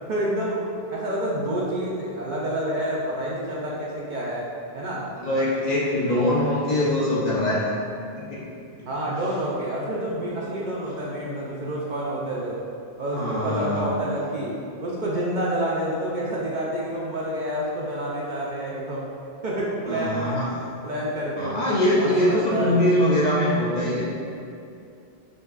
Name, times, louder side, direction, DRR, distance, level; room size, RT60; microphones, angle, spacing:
voice 1, 0.1-4.5 4.7-5.1 8.9-12.6 13.0-14.5 14.8-19.1 19.4-20.4 20.8-21.6 21.9-22.8, right 1 dB, 55° right, -5 dB, 0.7 m, -28 dB
voice 2, 5.2-7.7 8.2-8.5 10.2-10.5 13.1-13.9 19.9-20.5 21.4-24.2, left 1 dB, 50° left, -6 dB, 0.6 m, -23 dB
6.3 x 2.3 x 2.4 m, 2.5 s
omnidirectional pair, 1.1 m